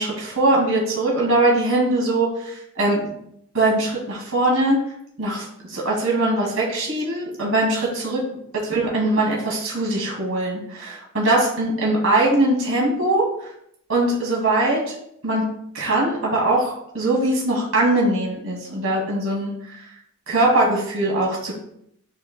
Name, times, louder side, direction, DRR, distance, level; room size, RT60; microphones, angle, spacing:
voice 1, 0.0-3.0 3.5-4.8 5.2-8.2 8.5-13.2 13.9-15.0 15.2-15.4 15.7-19.8 20.3-21.5, right 2 dB, 80° right, -4 dB, 2.2 m, -21 dB
10.0 x 4.8 x 2.2 m, 0.74 s
head